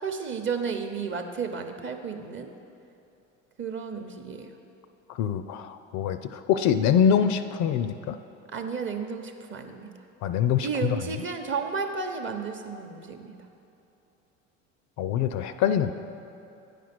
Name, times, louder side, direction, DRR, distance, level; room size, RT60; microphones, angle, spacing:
voice 1, 0.0-2.5 3.6-4.5 8.5-9.9 10.6-13.3, right 5 dB, 30° right, 5 dB, 0.8 m, -32 dB
voice 2, 5.1-8.2 10.2-10.7 15.0-15.9, left 8 dB, 50° left, 10 dB, 0.4 m, -24 dB
8.9 x 5.0 x 6.0 m, 2.8 s
hypercardioid pair, 80°, 38 cm